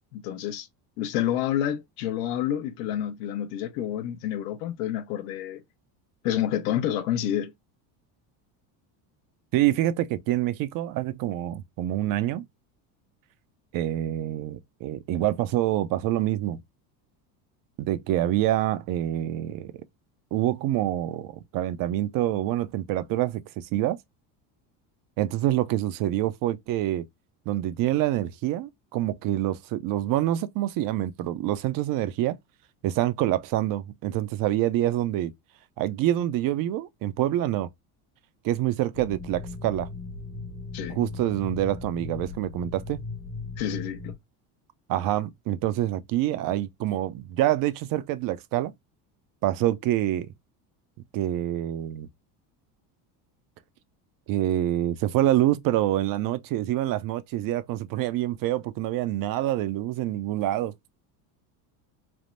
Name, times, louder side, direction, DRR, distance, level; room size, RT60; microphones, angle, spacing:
voice 1, 0.1-0.7 1.0-5.6 6.2-7.5 40.7-41.0 43.6-44.1, left 11 dB, 75° left, 0.8 m, -29 dB
voice 2, 9.5-12.4 13.7-16.6 17.8-19.7 20.3-24.0 25.2-27.0 27.5-32.4 32.8-35.3 35.8-37.7 38.4-39.9 41.0-43.0 44.9-48.7 49.4-50.3 51.1-52.1 54.3-60.7, right 13 dB, 50° right, 0.5 m, -26 dB
sound 1, 38.9-44.1, left 3 dB, 55° left, 1.3 m, -38 dB
3.4 x 2.1 x 2.4 m
supercardioid pair, 120°, 46 cm